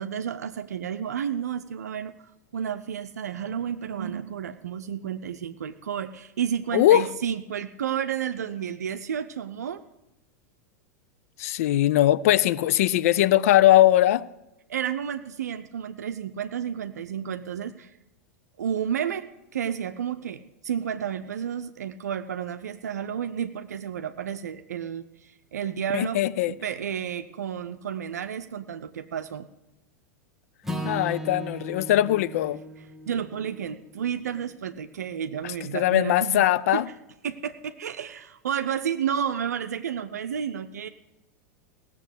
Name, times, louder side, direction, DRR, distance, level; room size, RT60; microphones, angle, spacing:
voice 1, 0.0-2.1 2.5-9.8 14.7-17.9 18.6-26.2 26.5-29.5 33.1-36.4 36.7-36.8 37.2-40.9, right 8 dB, 75° right, 0.6 m, -31 dB
voice 2, 6.7-7.1 11.4-14.3 25.9-26.5 30.8-32.6 35.4-36.9, left 13 dB, 60° left, 0.5 m, -20 dB
Acoustic guitar / Strum, 30.6-34.9, right 1 dB, 5° right, 1.4 m, -37 dB
16.5 x 7.1 x 8.1 m
hypercardioid pair, 90°, 9 cm